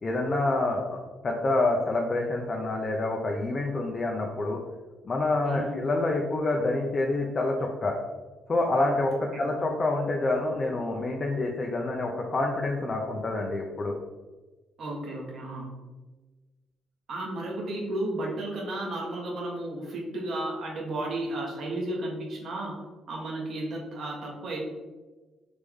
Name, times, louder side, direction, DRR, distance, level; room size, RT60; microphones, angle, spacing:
voice 1, 0.0-1.0 1.2-4.6 5.0-8.0 8.5-13.9, left 2 dB, 35° left, 0 dB, 0.6 m, -27 dB
voice 2, 14.8-15.7 17.1-22.8 23.1-24.7, right 1 dB, 60° right, -2 dB, 1.3 m, -33 dB
4.0 x 3.3 x 3.6 m, 1.2 s
cardioid pair, 90°, 0 cm